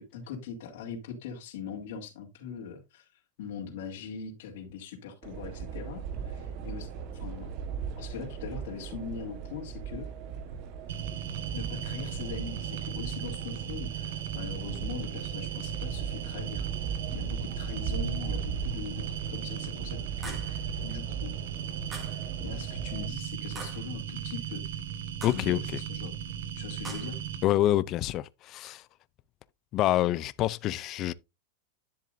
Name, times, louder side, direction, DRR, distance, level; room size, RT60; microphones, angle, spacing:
voice 1, 0.0-7.5 8.0-10.1 11.5-21.4 22.4-24.6 25.3-26.1 26.5-27.2, left 6 dB, 65° left, 2.5 m, -41 dB
sound 1, 5.2-23.1, right 7 dB, 40° right, 1.4 m, -38 dB
sound 2, 10.9-27.4, right 9 dB, 65° right, 1.4 m, -37 dB
sound 3, 20.2-20.6 21.9-22.3 23.5-24.0 25.2-25.6 26.8-27.2, right 3 dB, 15° right, 2.1 m, -43 dB
voice 2, 25.2-25.6 27.4-28.8 29.7-31.1, left 14 dB, 30° left, 0.4 m, -26 dB
10.5 x 7.1 x 2.6 m
supercardioid pair, 160°, 0 cm